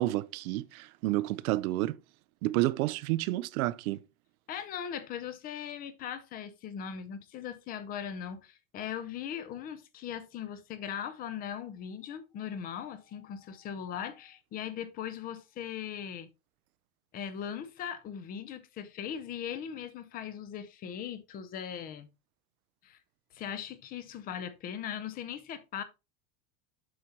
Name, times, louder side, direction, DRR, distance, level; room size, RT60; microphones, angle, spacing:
voice 1, 0.0-2.0 2.4-4.0, right 17 dB, 80° right, 0.6 m, -30 dB
voice 2, 4.5-16.3 17.1-22.1 22.8-23.0 23.3-25.8, left 8 dB, 20° left, 0.5 m, -39 dB
7.8 x 5.5 x 2.8 m
supercardioid pair, 155°, 42 cm